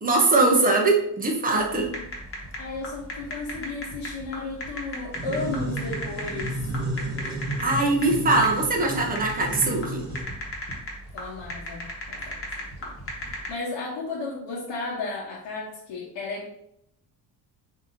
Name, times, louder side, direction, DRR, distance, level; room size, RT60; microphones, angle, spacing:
voice 1, 0.0-1.9 7.6-10.0, right 2 dB, 20° right, 0 dB, 0.7 m, -21 dB
sound 1, 1.6-13.5, left 1 dB, 30° left, 1.2 m, -36 dB
voice 2, 2.6-6.6 11.1-12.4 12.8-16.5, left 3 dB, 75° left, -7 dB, 1.2 m, -34 dB
sound 2, 5.1-10.2, right 2 dB, 40° right, 1.2 m, -32 dB
3.9 x 2.8 x 3.8 m, 0.75 s
cardioid pair, 155°, 44 cm